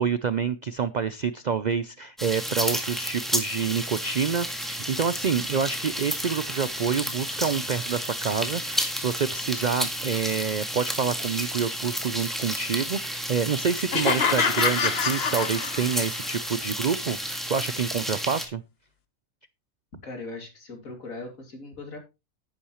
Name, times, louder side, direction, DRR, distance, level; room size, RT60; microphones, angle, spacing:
voice 1, 0.0-18.6, right 6 dB, 80° right, 14 dB, 0.4 m, -27 dB
sound 1, 2.2-18.5, equal, ahead, 1.8 m, -31 dB
sound 2, 13.9-16.2, left 6 dB, 45° left, 1.3 m, -26 dB
voice 2, 20.0-22.0, left 3 dB, 70° left, 4 dB, 3.1 m, -39 dB
10.5 x 10.0 x 3.0 m, 0.26 s
omnidirectional pair, 1.5 m